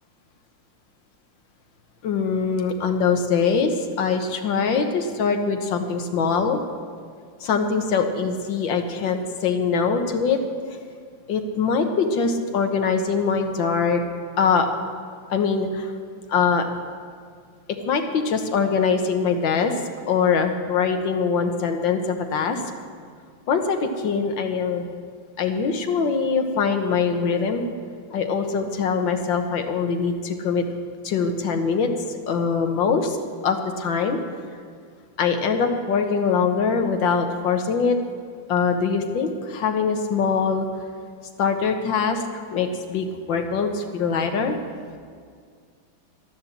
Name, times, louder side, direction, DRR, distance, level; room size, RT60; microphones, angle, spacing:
voice 1, 2.0-6.6 7.4-10.4 11.3-14.0 14.4-14.7 15.3-15.9 16.3-16.7 17.9-19.7 20.1-22.6 23.5-24.8 25.4-27.6 28.1-30.6 31.0-33.2 33.4-34.2 35.2-38.0 38.5-40.7 41.4-44.6, left 5 dB, 75° left, 5 dB, 1.8 m, -23 dB
11.5 x 11.0 x 7.3 m, 2.1 s
omnidirectional pair, 2.1 m